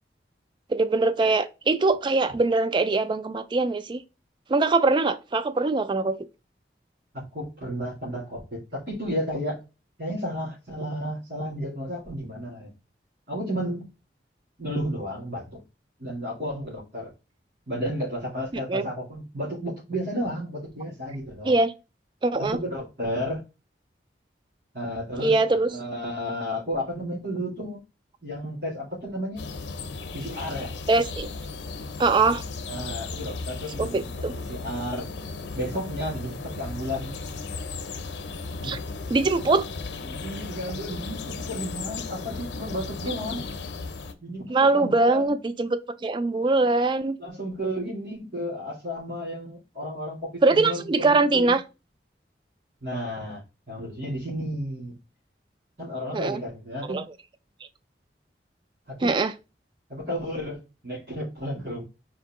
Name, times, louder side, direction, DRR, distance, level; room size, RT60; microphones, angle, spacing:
voice 1, 0.7-4.0 4.5-6.2 18.7-18.9 21.4-21.7 22.2-22.6 25.2-25.7 30.9-31.3 32.0-32.4 33.8-34.3 38.6-38.8 39.1-39.7 44.5-47.2 50.4-51.6 56.1-56.4 56.9-57.0 59.0-59.3, right 3 dB, 25° right, 0.3 m, -22 dB
voice 2, 7.1-9.6 10.0-12.7 13.3-13.9 14.6-15.6 16.0-17.1 17.7-21.5 22.4-23.4 24.7-27.8 28.2-29.5 30.1-30.7 32.7-34.0 34.3-35.1 35.5-37.2 38.6-38.7 40.1-43.5 44.2-45.4 47.2-51.6 52.8-55.0 55.8-57.1 59.0-59.1 59.9-61.8, equal, 60° right, 2.6 m, -32 dB
sound 1, 29.4-44.1, left 3 dB, 90° left, 0.6 m, -36 dB
4.5 x 2.7 x 3.6 m
head